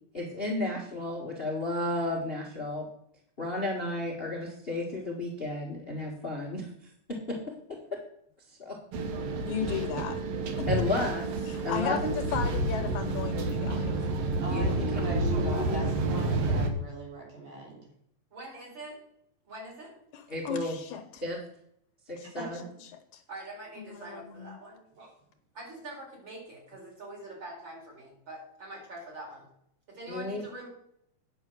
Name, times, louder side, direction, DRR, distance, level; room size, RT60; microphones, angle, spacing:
voice 1, 0.1-2.9 3.4-6.7 7.1-7.4 8.6-8.8 10.7-11.2 11.6-12.0 14.5-15.1 20.3-20.8 21.2-21.4 22.1-22.6 30.1-30.4, left 2 dB, 25° left, -1 dB, 1.3 m, -32 dB
sound 1, 8.9-16.7, right 2 dB, 60° right, 2.0 m, -29 dB
voice 2, 9.4-10.2 10.6-10.9 11.5-14.1 20.1-21.2 22.2-22.3 22.9-23.2 23.8-24.6, left 9 dB, 75° left, 8 dB, 2.3 m, -36 dB
voice 3, 14.4-17.9 22.4-22.6 25.0-25.1, right 2 dB, 80° right, -2 dB, 5.0 m, -40 dB
voice 4, 18.3-19.0 19.4-19.9 23.3-24.8 25.5-29.4 29.9-30.7, right 2 dB, 35° right, -3 dB, 5.0 m, -44 dB
9.5 x 6.8 x 6.2 m, 0.72 s
omnidirectional pair, 3.6 m